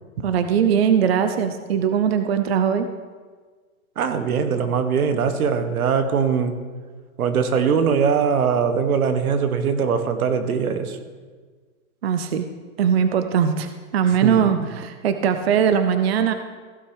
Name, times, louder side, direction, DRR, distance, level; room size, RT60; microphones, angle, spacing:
voice 1, 0.2-2.9 12.0-12.4 12.8-16.3, right 7 dB, 45° right, 9 dB, 0.6 m, -20 dB
voice 2, 4.0-6.5 7.2-11.0 14.2-14.6, right 6 dB, 90° right, 8 dB, 1.5 m, -21 dB
15.5 x 6.1 x 4.8 m, 1.5 s
hypercardioid pair, 180°, 42 cm